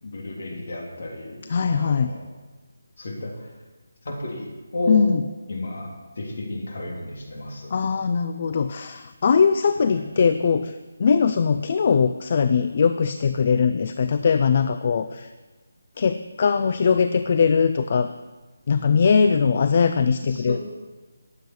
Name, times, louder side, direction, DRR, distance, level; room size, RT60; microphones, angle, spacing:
voice 1, 0.0-1.4 1.7-2.3 3.0-3.5 4.0-5.0 5.5-7.7 9.9-10.0 20.3-20.6, left 1 dB, 50° left, -1 dB, 3.4 m, -32 dB
voice 2, 1.5-2.1 4.9-5.2 7.7-15.3 16.0-18.1 18.7-20.6, left 6 dB, 35° left, 10 dB, 0.4 m, -21 dB
20.0 x 7.8 x 4.8 m, 1.3 s
figure-of-eight pair, 175°, 0 cm